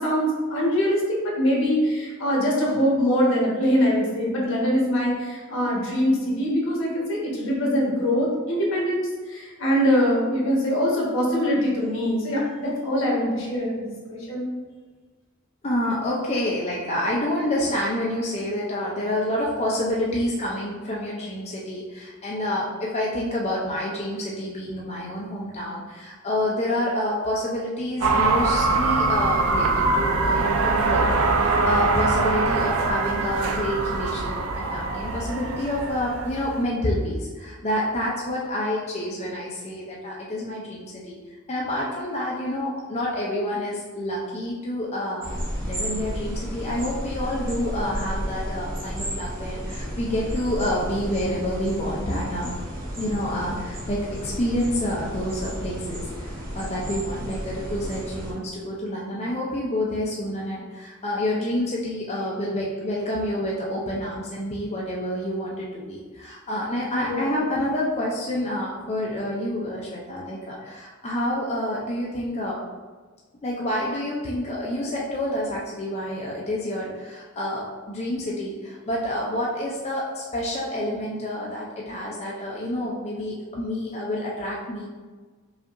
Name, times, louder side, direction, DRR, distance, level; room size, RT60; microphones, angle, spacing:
voice 1, 0.0-14.5 67.1-67.2, equal, 75° left, -4 dB, 1.2 m, -23 dB
voice 2, 15.6-41.2 41.5-45.3 45.6-52.5 53.0-72.6 73.4-84.8, left 1 dB, 30° left, -5 dB, 0.5 m, -28 dB
sound 1, 28.0-36.6, right 3 dB, 90° right, 0.4 m, -23 dB
sound 2, 45.2-58.3, equal, 45° right, 0.9 m, -33 dB
5.0 x 2.8 x 2.5 m, 1.4 s
head